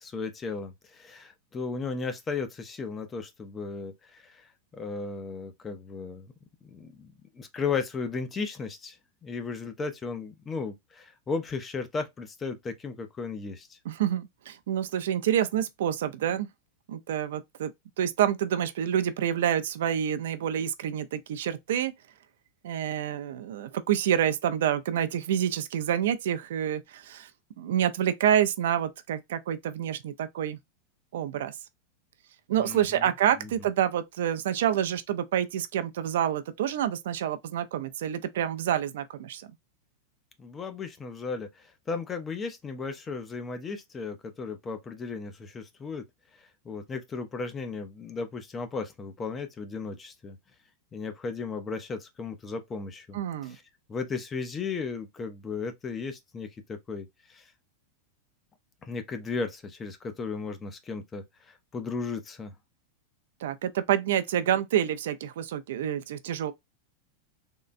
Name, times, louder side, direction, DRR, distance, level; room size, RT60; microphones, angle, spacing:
voice 1, 0.0-6.3 6.6-9.0 9.2-13.8 32.6-33.1 33.4-33.5 40.4-46.0 46.6-50.4 50.9-53.6 53.9-57.4 58.8-62.5, left 4 dB, 15° left, 0.5 m, -35 dB
voice 2, 13.8-16.5 16.9-17.7 18.0-21.9 22.6-27.3 27.6-30.6 31.1-31.6 32.5-39.5 53.1-53.6 63.4-66.5, right 10 dB, 75° right, 0.4 m, -28 dB
3.7 x 2.1 x 2.5 m
supercardioid pair, 160°, 0 cm